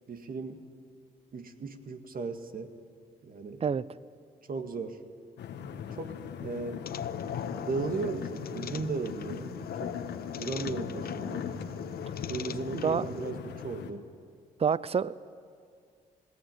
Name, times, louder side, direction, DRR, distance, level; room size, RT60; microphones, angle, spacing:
voice 1, 0.1-0.6 1.3-2.7 3.2-3.6 4.5-5.0 5.9-6.9 7.6-9.9 10.4-11.5 12.3-14.1, right 4 dB, 55° right, 7 dB, 1.9 m, -36 dB
sound 1, 5.4-13.9, left 7 dB, 75° left, 1.4 m, -38 dB
sound 2, 6.9-13.3, left 9 dB, 60° left, 0.7 m, -48 dB
voice 2, 12.7-13.1 14.6-15.1, right 6 dB, 35° right, 19 dB, 0.6 m, -27 dB
19.0 x 17.5 x 9.2 m, 2.2 s
supercardioid pair, 50°, 18 cm